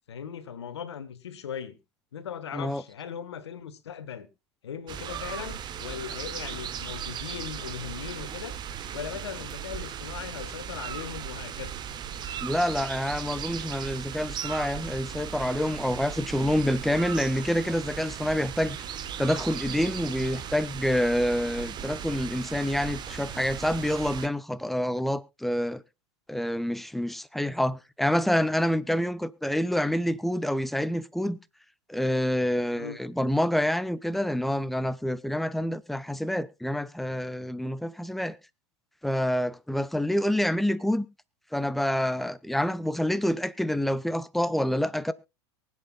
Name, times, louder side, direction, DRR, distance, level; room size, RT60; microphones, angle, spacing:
voice 1, 0.1-1.8 2.1-4.3 4.6-8.6 8.9-11.8 32.8-33.0, left 8 dB, 70° left, 1.5 m, -38 dB
sound 1, 4.9-24.3, right 9 dB, 30° right, 1.2 m, -37 dB
voice 2, 12.4-18.9 19.2-25.8 26.3-31.4 31.9-38.4 39.0-41.1 41.5-45.1, equal, ahead, 0.8 m, -27 dB
23.5 x 8.2 x 2.3 m
figure-of-eight pair, 85°, 14 cm